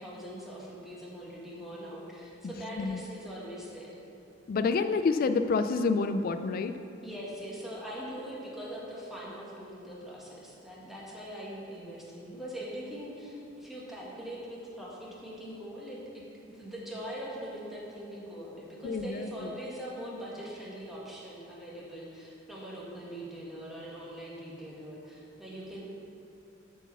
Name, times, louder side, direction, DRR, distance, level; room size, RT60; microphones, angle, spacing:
voice 1, 0.0-4.0 7.0-25.8, equal, ahead, -6 dB, 1.7 m, -42 dB
voice 2, 4.5-6.8 18.8-19.3, left 4 dB, 50° left, 10 dB, 0.3 m, -28 dB
8.0 x 4.7 x 7.0 m, 2.7 s
head